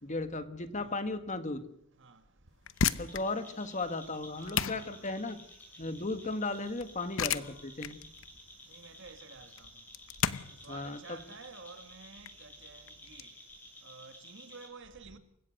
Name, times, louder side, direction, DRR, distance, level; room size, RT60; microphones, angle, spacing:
voice 1, 0.0-1.6 3.0-5.4 5.8-8.0 10.7-11.2, left 2 dB, 35° left, 1.5 m, -36 dB
sound 1, 2.5-13.2, left 7 dB, 60° left, 0.8 m, -36 dB
sound 2, 2.7-14.7, left 1 dB, 10° left, 6.5 m, -54 dB
voice 2, 2.9-3.5 4.3-5.2 5.8-5.9 8.7-9.7 10.6-13.3 13.8-15.2, right 4 dB, 55° right, 2.0 m, -52 dB
28.5 x 16.5 x 6.5 m
head